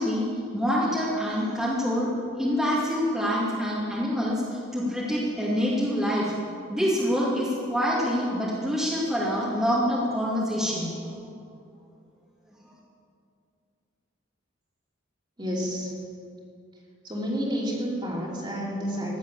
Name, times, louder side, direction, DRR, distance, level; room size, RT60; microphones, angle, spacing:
voice 1, 0.0-6.3 6.7-10.9, equal, ahead, -8 dB, 2.3 m, -26 dB
voice 2, 15.4-15.9 17.0-19.2, equal, 25° right, -3 dB, 3.0 m, -30 dB
16.0 x 11.0 x 7.3 m, 2.4 s
head